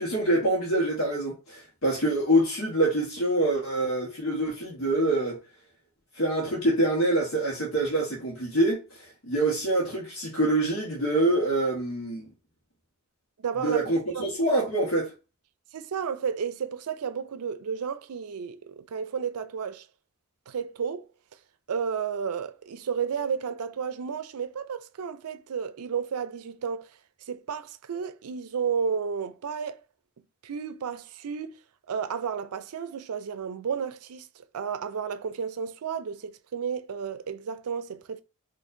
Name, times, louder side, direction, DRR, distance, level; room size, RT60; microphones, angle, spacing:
voice 1, 0.0-5.4 6.1-12.3 13.6-15.1, right 1 dB, 70° left, 1.2 m, -25 dB
voice 2, 13.4-13.8 14.1-14.3 15.7-19.9 20.5-21.1 21.7-26.9 27.3-29.8 30.4-31.6 31.9-38.2, right 6 dB, 85° right, 0.4 m, -32 dB
4.4 x 2.6 x 2.6 m
head